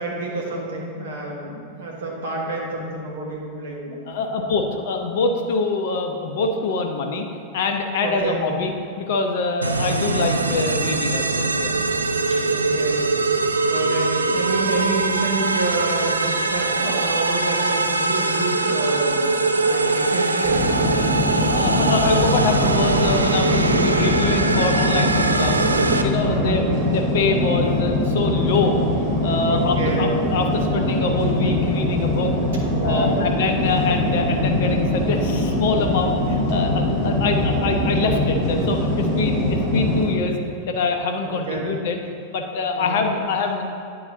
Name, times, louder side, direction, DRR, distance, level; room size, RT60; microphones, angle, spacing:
voice 1, 0.0-4.4 8.0-8.4 12.3-13.1 13.7-19.3 19.6-20.9 21.3-21.7 26.2-26.6 29.5-30.1 32.7-33.7 37.1-37.3 41.2-41.7 42.8-43.0, right 2 dB, 60° right, -2 dB, 1.4 m, -28 dB
voice 2, 4.1-7.3 7.5-8.7 9.0-11.7 21.5-25.6 26.0-28.8 29.2-32.3 32.8-40.4 40.7-42.0 42.3-43.6, left 4 dB, 55° left, 4 dB, 0.6 m, -24 dB
sound 1, 9.6-26.0, right 3 dB, 80° right, 0.3 m, -22 dB
sound 2, 20.4-40.1, left 1 dB, 40° right, 1.6 m, -22 dB
9.0 x 3.9 x 3.8 m, 2.4 s
figure-of-eight pair, 90°, 0 cm